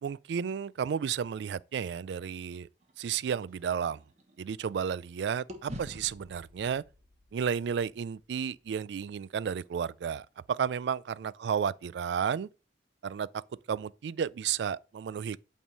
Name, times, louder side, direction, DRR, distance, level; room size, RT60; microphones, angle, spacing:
voice 1, 0.0-2.7 3.0-4.0 4.4-6.8 7.3-12.5 13.0-13.4 13.7-15.4, right 7 dB, 70° right, 0.3 m, -32 dB
sound 1, 2.8-5.1 5.5-9.7, equal, 40° right, 1.2 m, -49 dB
8.6 x 3.6 x 5.2 m
head